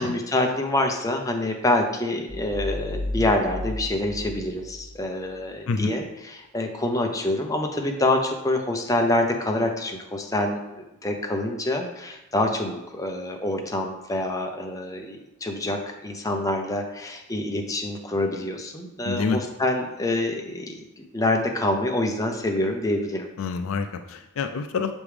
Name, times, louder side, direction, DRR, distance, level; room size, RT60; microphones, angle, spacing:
voice 1, 0.0-23.3, left 1 dB, 15° left, 3 dB, 0.6 m, -26 dB
sound 1, 2.3-5.2, left 1 dB, 45° right, 1.9 m, -33 dB
voice 2, 19.0-19.4 23.4-25.0, left 5 dB, 65° left, 8 dB, 0.4 m, -27 dB
5.9 x 5.2 x 3.3 m, 0.93 s
head